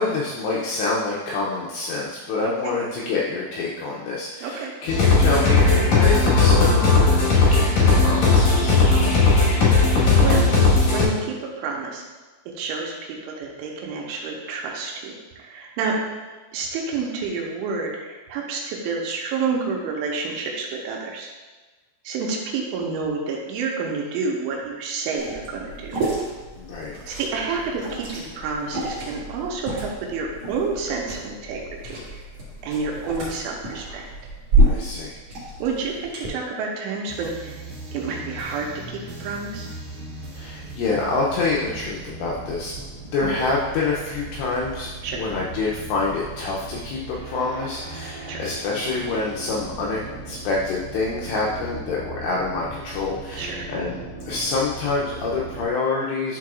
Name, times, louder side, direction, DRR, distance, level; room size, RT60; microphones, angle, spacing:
voice 1, 0.0-8.7 26.6-27.2 33.9-34.0 34.6-35.2 40.3-42.8 43.1-50.0 50.3-54.0 54.3-56.4, left 3 dB, 85° left, -4 dB, 2.5 m, -27 dB
voice 2, 2.4-2.8 4.4-4.7 8.9-9.4 10.2-10.5 10.9-12.1 12.6-12.9 13.2-15.9 16.5-21.3 22.0-26.0 27.1-32.0 32.6-34.1 35.6-37.6 37.9-39.7 43.2-43.3 45.0-45.2 48.3-48.4 53.4-53.7, right 4 dB, 85° right, -1 dB, 3.1 m, -29 dB
sound 1, 4.9-11.0, left 3 dB, 70° left, 1.7 m, -17 dB
Liquid, 25.2-36.3, right 1 dB, 50° right, 2.0 m, -28 dB
sound 2, 37.1-55.7, right 2 dB, 65° right, 1.8 m, -38 dB
11.0 x 4.7 x 2.4 m, 1.3 s
omnidirectional pair, 5.6 m